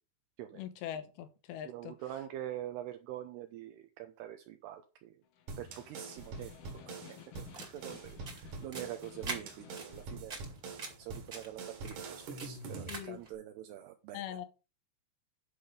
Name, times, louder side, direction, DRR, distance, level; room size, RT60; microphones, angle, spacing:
voice 1, 0.5-1.9 12.9-13.2 14.1-14.5, left 10 dB, 85° left, 3.2 m, -42 dB
voice 2, 1.6-5.2 5.6-6.8 7.1-10.4 11.0-14.2, right 12 dB, 80° right, 2.7 m, -45 dB
Snare drum, 5.2-10.2, left 9 dB, 70° left, 2.9 m, -55 dB
sound 1, 5.5-13.0, right 4 dB, 55° right, 2.9 m, -45 dB
sound 2, 7.4-13.3, right 3 dB, 30° right, 1.9 m, -46 dB
10.5 x 5.1 x 5.5 m
omnidirectional pair, 5.1 m